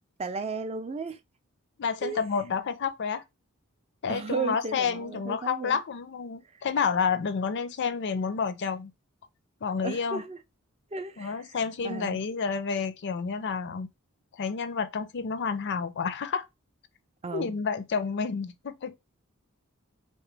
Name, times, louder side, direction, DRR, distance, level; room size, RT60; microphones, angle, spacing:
voice 1, 0.2-1.2 2.0-2.2 4.1-5.8 6.5-6.6 9.8-10.4 10.9-11.6 11.8-12.3 17.2-17.6, right 4 dB, 30° right, 0.4 m, -34 dB
voice 2, 1.8-3.2 4.0-8.9 9.6-10.2 11.2-13.9 14.4-16.5 17.3-19.0, left 5 dB, 55° left, 0.4 m, -30 dB
3.1 x 2.9 x 3.3 m
head